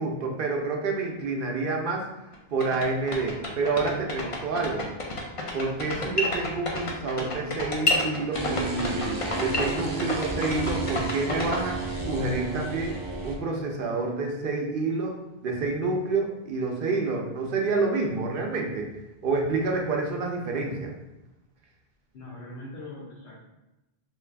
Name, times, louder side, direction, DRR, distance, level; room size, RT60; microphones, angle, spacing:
voice 1, 0.0-2.0 2.5-4.9 5.5-13.0 13.2-15.2 15.4-18.9 19.2-20.9, right 3 dB, 65° right, 1 dB, 0.8 m, -28 dB
sound 1, 2.3-2.4 2.6-11.6, left 2 dB, 45° left, 0.5 m, -29 dB
sound 2, 8.3-13.3, right 3 dB, 30° right, 0.4 m, -32 dB
voice 2, 22.1-23.4, left 2 dB, 80° left, -6 dB, 0.9 m, -41 dB
3.0 x 2.4 x 3.3 m, 0.98 s
omnidirectional pair, 1.0 m